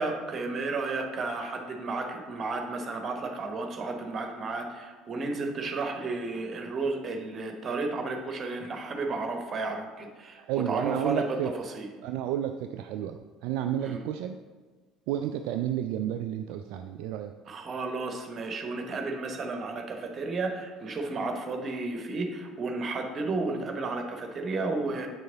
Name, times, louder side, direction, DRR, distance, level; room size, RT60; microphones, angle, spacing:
voice 1, 0.0-11.9 13.8-14.0 17.5-25.1, right 3 dB, 35° right, 4 dB, 1.2 m, -32 dB
voice 2, 10.4-11.5 12.0-14.4 15.1-17.3, right 10 dB, 55° right, 7 dB, 0.3 m, -31 dB
8.0 x 6.5 x 3.9 m, 1.4 s
figure-of-eight pair, 60°, 0 cm